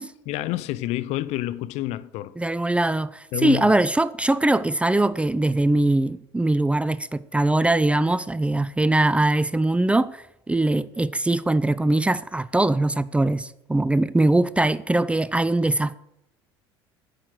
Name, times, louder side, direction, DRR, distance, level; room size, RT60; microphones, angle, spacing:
voice 1, 0.3-2.3 3.3-3.8, left 15 dB, 55° left, 0.6 m, -28 dB
voice 2, 2.4-15.9, right 2 dB, 10° right, 0.5 m, -22 dB
9.9 x 6.5 x 7.7 m
figure-of-eight pair, 65°, 13 cm